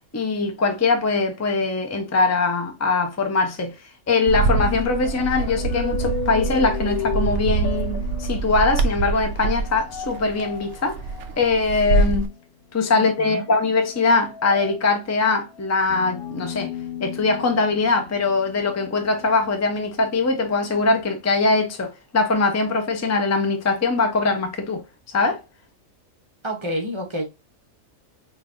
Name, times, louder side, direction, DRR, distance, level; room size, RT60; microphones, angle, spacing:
voice 1, 0.1-3.7 4.1-11.0 11.4-12.3 12.7-16.7 17.0-24.8 25.1-25.4, left 3 dB, 20° left, 0.4 m, -22 dB
sound 1, 4.1-12.3 12.9-21.0, left 7 dB, 65° left, 0.6 m, -35 dB
Bird, 4.3-12.3, right 4 dB, 65° right, 0.8 m, -25 dB
voice 2, 12.9-13.4 26.4-27.3, equal, 30° right, 0.6 m, -29 dB
5.0 x 2.6 x 2.6 m
omnidirectional pair, 1.5 m